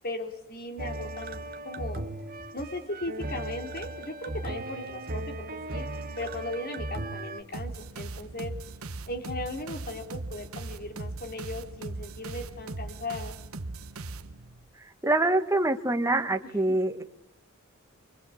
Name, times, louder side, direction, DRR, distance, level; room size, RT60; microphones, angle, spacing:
voice 1, 0.0-2.0 2.5-5.9 6.2-8.5 9.1-13.4, left 2 dB, 45° left, 5 dB, 3.6 m, -37 dB
sound 1, 0.8-7.4, right 2 dB, 45° right, 1.5 m, -37 dB
sound 2, 7.5-14.7, right 2 dB, 80° right, 1.2 m, -39 dB
voice 2, 15.0-17.0, right 2 dB, 15° right, 5 dB, 1.6 m, -25 dB
26.0 x 24.0 x 8.6 m, 0.75 s
head